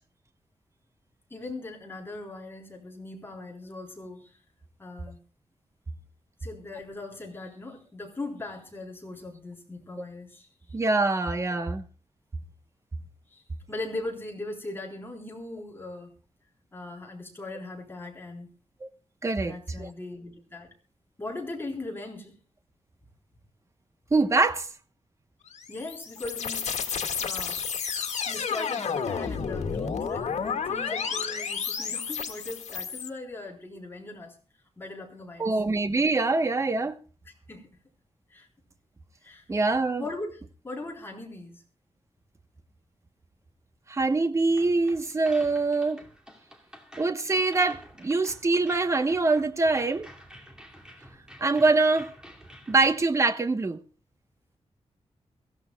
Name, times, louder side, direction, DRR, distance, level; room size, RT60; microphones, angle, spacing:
voice 1, 1.3-4.4 4.8-5.2 6.4-10.5 13.3-13.4 13.7-16.1 16.7-18.5 19.3-20.7 21.2-22.4 25.7-26.7 27.2-27.6 28.3-34.4 34.8-35.5 37.3-37.8 38.3-38.5 39.2-39.4 40.0-41.6, left 2 dB, 20° left, 3.7 m, -39 dB
voice 2, 10.7-11.8 18.8-18.9 19.2-19.9 24.1-24.7 35.4-37.0 39.5-40.0 43.9-46.0 47.0-50.1 51.4-52.1 52.7-53.8, right 3 dB, 25° right, 1.0 m, -24 dB
sound 1, 25.5-33.1, left 6 dB, 85° left, 2.0 m, -31 dB
sound 2, 44.5-53.0, equal, 5° right, 2.4 m, -49 dB
23.5 x 15.5 x 2.3 m
wide cardioid pair, 180°, 11 cm